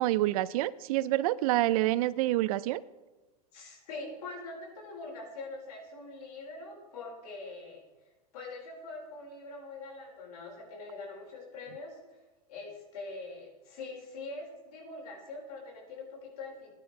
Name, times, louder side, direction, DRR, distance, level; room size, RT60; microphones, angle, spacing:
voice 1, 0.0-2.8, right 16 dB, 65° right, 18 dB, 0.5 m, -27 dB
voice 2, 3.5-7.8 8.3-12.0 12.5-16.7, left 3 dB, 70° left, -2 dB, 4.9 m, -43 dB
16.5 x 10.5 x 3.3 m, 1.2 s
hypercardioid pair, 110°, 20 cm